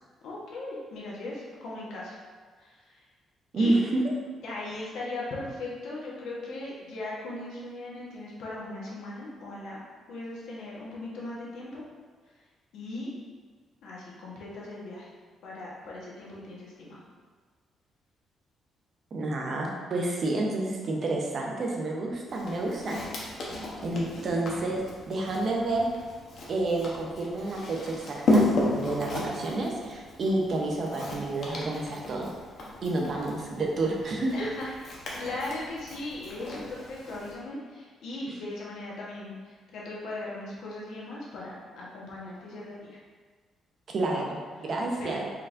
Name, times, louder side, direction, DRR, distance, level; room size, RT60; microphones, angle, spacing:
voice 1, 0.2-2.2 2.6-3.0 3.5-3.8 4.4-9.8 10.1-11.8 12.7-13.1 13.8-15.1 15.4-17.0 24.1-24.3 34.3-34.7 35.1-43.0 45.0-45.2, left 2 dB, 75° left, -5 dB, 1.1 m, -38 dB
voice 2, 3.5-4.1 19.1-23.0 23.8-25.9 26.5-28.4 28.7-32.3 32.8-34.5 43.9-45.2, right 2 dB, 40° right, -1 dB, 0.6 m, -29 dB
Walk footsteps, 22.3-37.3, left 1 dB, 50° left, 0.8 m, -33 dB
4.4 x 3.8 x 2.5 m, 1.5 s
cardioid pair, 160°, 0 cm